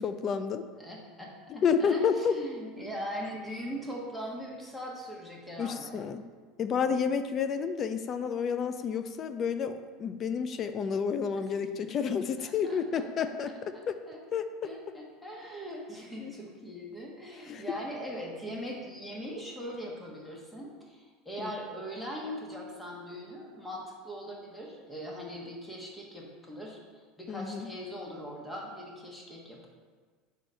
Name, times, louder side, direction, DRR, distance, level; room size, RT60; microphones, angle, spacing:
voice 1, 0.0-0.6 1.5-2.3 5.6-6.2 6.6-14.0 14.3-14.7 16.2-16.3 17.4-17.6 21.4-21.5 27.3-27.7, left 6 dB, 35° left, 10 dB, 0.4 m, -30 dB
voice 2, 0.8-6.0 11.3-11.5 11.8-11.9 12.4-13.0 13.7-14.2 14.6-29.7, equal, 5° left, -2 dB, 1.2 m, -41 dB
4.7 x 4.0 x 5.2 m, 1.5 s
supercardioid pair, 130°, 0 cm